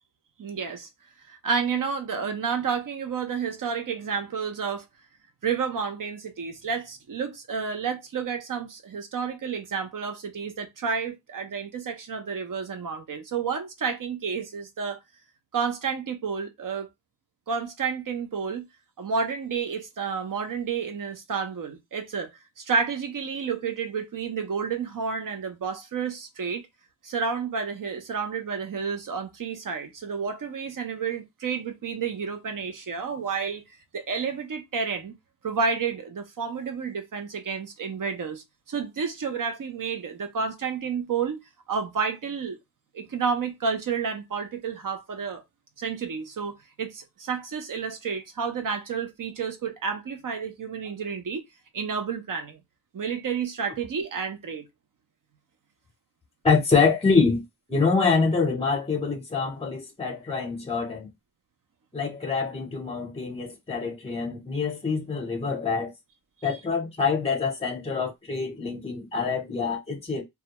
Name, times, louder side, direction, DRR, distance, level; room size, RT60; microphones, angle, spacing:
voice 1, 0.4-0.9 1.3-4.8 5.4-15.0 15.5-16.9 17.5-18.7 19.0-22.3 22.6-26.7 27.0-33.6 33.9-35.1 35.4-41.4 41.7-42.6 42.9-45.4 45.8-51.4 51.7-52.6 52.9-54.6 66.4-66.6, right 5 dB, 65° right, 0.6 m, -30 dB
voice 2, 56.4-57.4 57.7-61.1 61.9-65.9 66.4-70.2, left 4 dB, 15° left, 0.7 m, -25 dB
2.3 x 2.2 x 2.8 m
wide cardioid pair, 130°, 35 cm